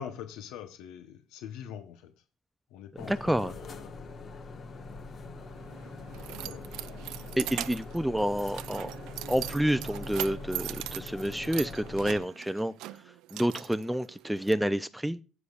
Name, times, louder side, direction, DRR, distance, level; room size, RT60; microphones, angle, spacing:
voice 1, 0.0-2.1 2.7-4.1 5.8-6.7, left 8 dB, 90° left, 0.9 m, -44 dB
sound 1, 3.0-12.2, left 3 dB, 40° left, 1.3 m, -43 dB
voice 2, 3.1-3.5 7.4-8.9 9.3-12.7 13.3-15.2, equal, 5° right, 0.4 m, -29 dB
Keys jangling, 5.5-14.5, right 16 dB, 80° right, 0.4 m, -41 dB
14.5 x 8.3 x 2.4 m
cardioid pair, 125°, 0 cm